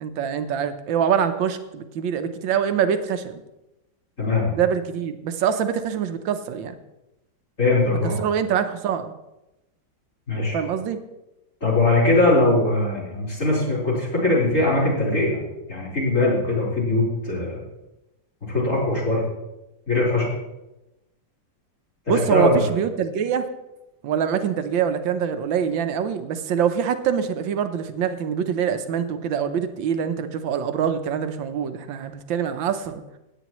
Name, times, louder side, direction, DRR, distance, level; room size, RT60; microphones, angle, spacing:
voice 1, 0.0-3.4 4.5-6.7 8.2-9.1 10.5-11.0 22.1-23.5 24.0-33.0, right 8 dB, 85° right, 9 dB, 1.6 m, -24 dB
voice 2, 4.2-4.5 7.6-8.2 10.3-10.6 11.6-15.4 15.7-17.6 18.4-19.2 19.9-20.3 22.1-22.7, left 2 dB, 40° left, -7 dB, 4.6 m, -21 dB
17.0 x 9.1 x 3.1 m, 0.97 s
omnidirectional pair, 2.0 m